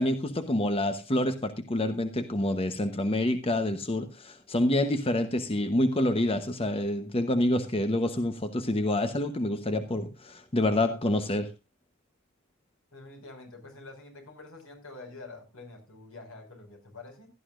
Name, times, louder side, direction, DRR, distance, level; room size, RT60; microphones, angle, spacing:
voice 1, 0.0-11.5, left 1 dB, 25° left, 8 dB, 1.0 m, -27 dB
voice 2, 12.9-17.3, left 3 dB, 80° left, 3 dB, 5.4 m, -47 dB
16.0 x 12.5 x 2.5 m, 0.26 s
head